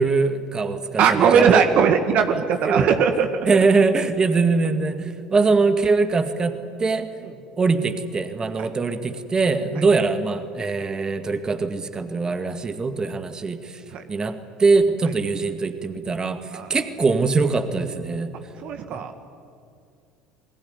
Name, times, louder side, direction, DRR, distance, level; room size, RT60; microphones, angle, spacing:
voice 1, 0.0-1.6 2.3-3.0 3.5-7.1 7.6-13.8 14.1-18.3 18.9-19.1, right 4 dB, 25° right, 9 dB, 2.1 m, -22 dB
voice 2, 1.0-3.3 7.2-7.3 8.6-8.7 9.8-9.9 13.9-14.0 16.5-16.7 18.6-19.1, right 7 dB, 55° right, 7 dB, 1.8 m, -19 dB
27.5 x 20.5 x 9.9 m, 2.4 s
hypercardioid pair, 65°, 3 cm